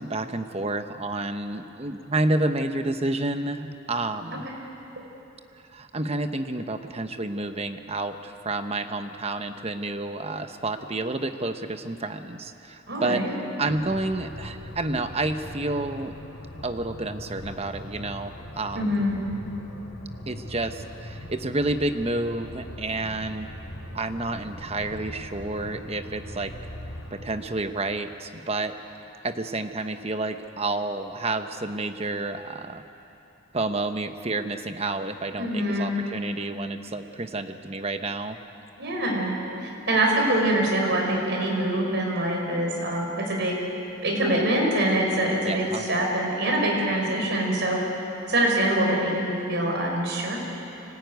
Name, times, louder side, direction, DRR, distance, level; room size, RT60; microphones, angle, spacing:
voice 1, 0.0-4.5 5.7-16.2 16.6-19.0 20.3-23.5 23.9-26.5 27.1-28.7 29.2-32.8 33.5-38.4 45.4-45.9, right 2 dB, 30° right, 8 dB, 1.0 m, -30 dB
voice 2, 12.9-13.3 18.8-19.2 35.4-35.9 38.8-39.3 39.9-43.6 44.0-47.8 48.3-50.4, right 1 dB, 55° right, 0 dB, 5.3 m, -24 dB
sound 1, 13.7-27.4, equal, 90° left, 3.8 m, -41 dB
25.0 x 19.0 x 9.4 m, 3.0 s
head